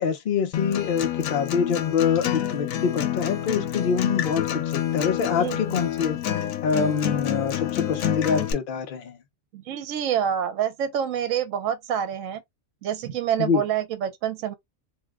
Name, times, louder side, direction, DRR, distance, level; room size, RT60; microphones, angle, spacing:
voice 1, 0.0-4.6 4.9-6.2 6.6-9.2 13.4-13.6, left 6 dB, 55° left, 0.6 m, -25 dB
Acoustic guitar, 0.5-8.5, left 11 dB, 80° left, 1.0 m, -28 dB
voice 2, 5.3-5.9 9.5-12.4 12.8-14.5, right 9 dB, 75° right, 1.0 m, -27 dB
2.5 x 2.1 x 3.4 m
omnidirectional pair, 1.4 m